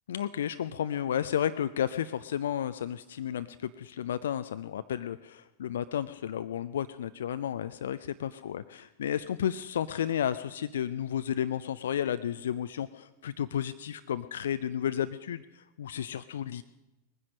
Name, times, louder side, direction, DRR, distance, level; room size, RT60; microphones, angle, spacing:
voice 1, 0.1-16.6, left 9 dB, 60° left, 12 dB, 0.5 m, -32 dB
20.5 x 10.0 x 6.2 m, 0.97 s
figure-of-eight pair, 90°, 0 cm